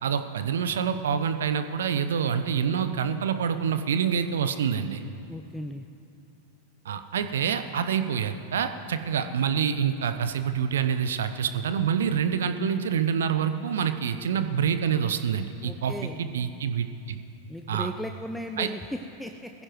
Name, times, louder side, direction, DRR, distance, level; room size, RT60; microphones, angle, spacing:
voice 1, 0.0-5.0 6.8-17.2 17.7-17.9 18.6-18.7, right 7 dB, 65° right, 10 dB, 0.7 m, -27 dB
voice 2, 5.3-5.9 15.6-16.2 17.5-19.5, left 1 dB, ahead, 5 dB, 0.5 m, -36 dB
22.0 x 15.5 x 3.1 m, 2.7 s
figure-of-eight pair, 90°, 0 cm